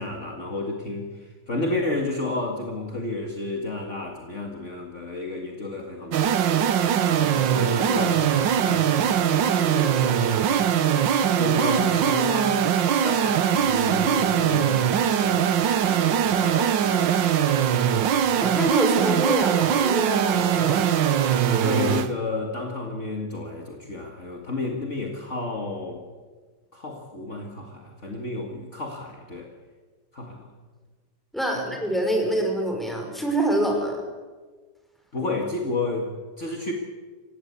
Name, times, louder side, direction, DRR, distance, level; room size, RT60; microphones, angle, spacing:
voice 1, 0.0-10.3 10.6-17.7 21.4-26.1 26.7-29.5 30.1-30.5 31.5-31.6 35.1-36.1 36.4-36.7, left 2 dB, 40° left, 2 dB, 2.3 m, -32 dB
sound 1, 6.1-22.1, right 9 dB, 90° right, 1.7 m, -21 dB
voice 2, 18.3-20.9 31.3-34.0, right 1 dB, ahead, 2 dB, 5.1 m, -25 dB
27.0 x 16.5 x 8.3 m, 1.4 s
omnidirectional pair, 1.9 m